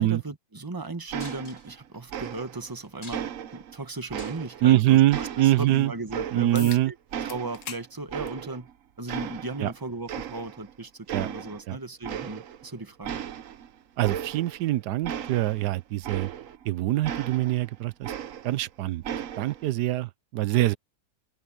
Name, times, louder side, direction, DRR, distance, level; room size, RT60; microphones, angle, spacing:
voice 1, 0.0-3.3 3.5-6.9 7.2-8.7 9.0-13.2, right 2 dB, 15° right, 1.4 m, -36 dB
sound 1, 1.1-1.8 2.1-2.7 3.1-4.7 5.1-6.8 7.1-8.7 9.1-9.8 10.1-10.7 11.1-11.6 12.0-12.7 13.0-16.7 17.0-18.7 19.0-19.7, right 9 dB, 60° right, 1.1 m, -36 dB
sound 2, 1.2-2.0 2.4-2.5 2.8-3.5 3.9-4.6 5.1-5.3 6.3-6.4, left 2 dB, 30° left, 4.2 m, -47 dB
voice 2, 4.6-5.9 6.3-6.9 9.6-9.7 11.1-11.3 11.7-11.8 14.0-16.3 16.6-18.1 18.4-20.8, right 15 dB, 90° right, 1.2 m, -24 dB
sound 3, 6.5-6.8 7.3-7.9 8.3-8.4 9.5-9.6 14.5-14.6, left 10 dB, 60° left, 1.0 m, -40 dB
open air
omnidirectional pair, 1.7 m